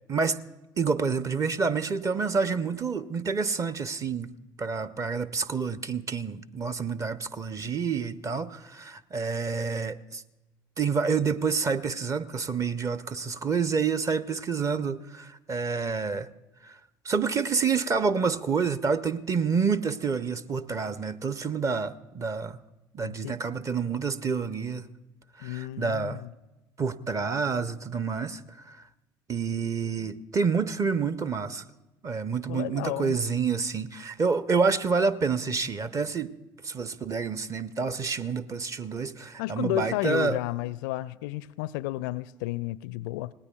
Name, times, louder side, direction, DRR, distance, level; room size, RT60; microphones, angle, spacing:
voice 1, 0.1-0.4 0.8-4.3 4.6-10.2 10.8-16.3 16.6-16.8 17.0-22.6 22.9-24.8 25.4-26.2 26.8-28.8 29.3-31.6 32.0-36.3 36.6-40.4, right 5 dB, 30° right, 0.7 m, -28 dB
voice 2, 23.0-23.4 25.4-26.3 32.5-33.2 39.4-43.3, left 17 dB, 60° left, 0.4 m, -32 dB
27.0 x 19.0 x 2.3 m
figure-of-eight pair, 60°, 11 cm